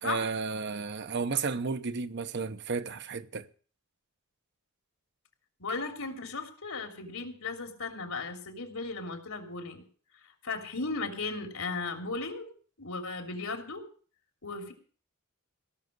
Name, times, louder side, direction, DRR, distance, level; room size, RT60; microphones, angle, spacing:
voice 1, 0.0-3.5, right 5 dB, 55° right, 0.8 m, -33 dB
voice 2, 5.6-9.8 10.2-12.5 12.8-13.8 14.4-14.7, left 3 dB, 85° left, 3.1 m, -36 dB
17.0 x 6.3 x 9.4 m
head